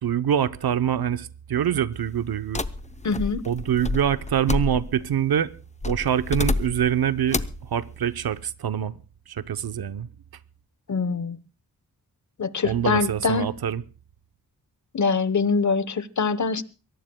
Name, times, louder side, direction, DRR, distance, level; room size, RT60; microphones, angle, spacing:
voice 1, 0.0-2.6 3.5-5.5 5.8-7.4 7.7-9.0 9.3-10.1 12.6-13.8, right 9 dB, 75° right, 0.8 m, -25 dB
sound 1, 2.5-5.1 5.8-6.9 7.3-7.7, left 3 dB, 20° left, 0.7 m, -29 dB
voice 2, 3.0-3.4 10.9-11.4 12.4-13.5 14.9-16.6, left 4 dB, 50° left, 1.1 m, -24 dB
23.5 x 18.5 x 2.3 m
wide cardioid pair, 85°, 37 cm